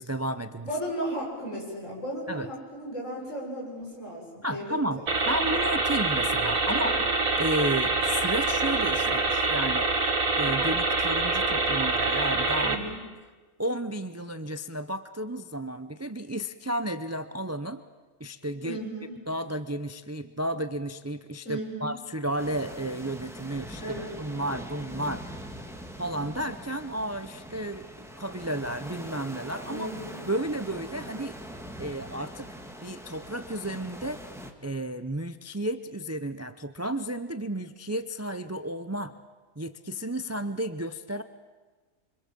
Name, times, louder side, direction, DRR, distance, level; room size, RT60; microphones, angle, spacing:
voice 1, 0.0-0.7 2.3-2.5 4.4-5.0 5.3-7.0 7.4-9.9 10.4-12.8 13.6-17.8 18.2-18.8 19.3-25.4 26.0-29.9 30.2-31.4 31.8-32.5 32.8-34.2 34.6-39.1 39.6-41.2, right 1 dB, 20° right, 11 dB, 0.5 m, -32 dB
voice 2, 0.6-4.8 6.7-7.0 12.6-13.0 18.6-19.1 21.5-21.9 23.8-24.1 29.7-30.3, right 1 dB, 65° left, -2 dB, 7.1 m, -35 dB
sound 1, 5.1-12.8, right 3 dB, 85° right, 2.4 m, -25 dB
sound 2, 22.4-34.5, equal, ahead, 1.8 m, -42 dB
25.5 x 25.5 x 7.5 m, 1.3 s
omnidirectional pair, 1.4 m